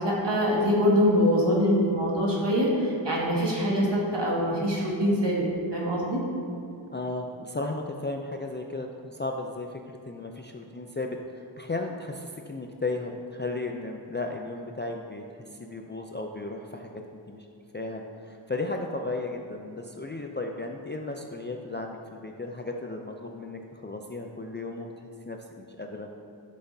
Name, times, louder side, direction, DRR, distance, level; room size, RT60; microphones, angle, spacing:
voice 1, 0.0-5.4 5.7-6.2, equal, 65° right, -4 dB, 1.9 m, -24 dB
voice 2, 6.9-15.2 15.6-16.9 17.3-17.5 17.7-26.1, left 2 dB, 25° left, 2 dB, 0.4 m, -35 dB
11.5 x 5.9 x 2.7 m, 2.6 s
wide cardioid pair, 70°, 46 cm